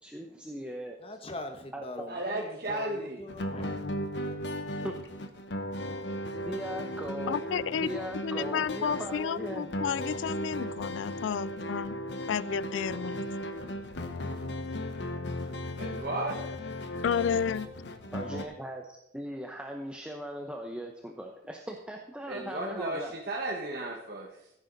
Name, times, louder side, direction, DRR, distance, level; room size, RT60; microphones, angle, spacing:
voice 1, 0.0-1.0 1.7-2.0 4.7-5.0 6.5-7.4 7.7-9.7 18.1-23.1, equal, 5° right, 1 dB, 0.8 m, -39 dB
voice 2, 1.0-3.8, left 1 dB, 30° left, 6 dB, 1.2 m, -42 dB
voice 3, 2.1-3.2 15.8-16.4 22.3-24.5, right 2 dB, 55° right, -1 dB, 1.5 m, -34 dB
sound 1, 3.3-18.4, equal, 70° left, 1.1 m, -36 dB
voice 4, 7.3-12.0 12.3-13.2 17.0-17.7, left 7 dB, 85° left, 21 dB, 0.3 m, -31 dB
15.0 x 9.1 x 4.0 m, 0.84 s
head